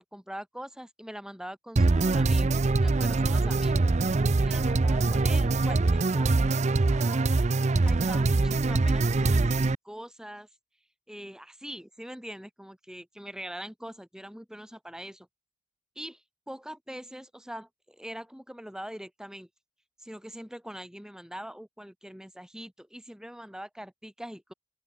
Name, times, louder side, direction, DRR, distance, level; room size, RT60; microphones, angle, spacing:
voice 1, 0.0-3.8 4.4-6.3 6.8-7.3 7.9-10.5 11.1-15.3 16.0-19.5 20.0-24.5, equal, 5° right, 1.9 m, -43 dB
sound 1, 1.8-9.8, right 3 dB, 35° right, 0.5 m, -23 dB
open air
head